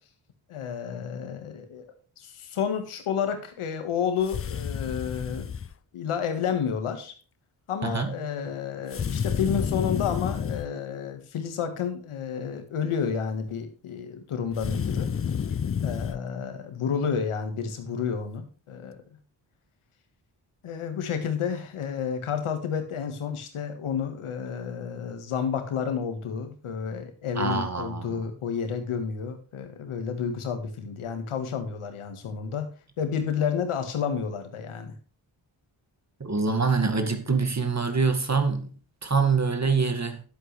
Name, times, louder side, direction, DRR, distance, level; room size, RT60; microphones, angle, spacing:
voice 1, 0.5-5.5 5.9-7.1 7.7-15.1 15.8-19.0 20.6-32.7 33.0-35.0, left 7 dB, 85° left, 1.7 m, -30 dB
sound 1, 4.2-5.7 8.9-10.7 14.5-16.2, left 7 dB, 30° left, 0.5 m, -30 dB
voice 2, 7.8-8.1 27.4-28.2 36.2-38.7 39.0-40.2, right 4 dB, 35° right, 2.1 m, -25 dB
11.0 x 8.0 x 3.3 m
supercardioid pair, 45°, 49 cm